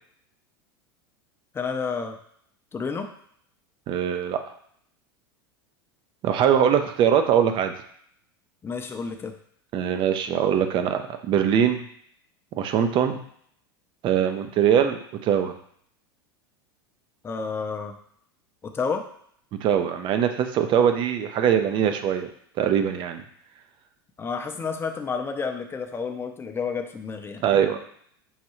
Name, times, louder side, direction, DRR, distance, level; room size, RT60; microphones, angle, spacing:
voice 1, 1.5-2.2 2.7-3.1 8.6-9.4 17.2-17.9 18.6-19.0 24.2-27.4, left 5 dB, 20° left, 5 dB, 0.5 m, -30 dB
voice 2, 3.9-4.4 6.2-7.8 9.7-11.8 12.5-13.2 14.0-15.5 19.6-22.3 22.6-23.2 27.4-27.8, right 8 dB, 40° right, 7 dB, 0.5 m, -22 dB
5.5 x 2.3 x 3.0 m, 0.66 s
hypercardioid pair, 90°, 12 cm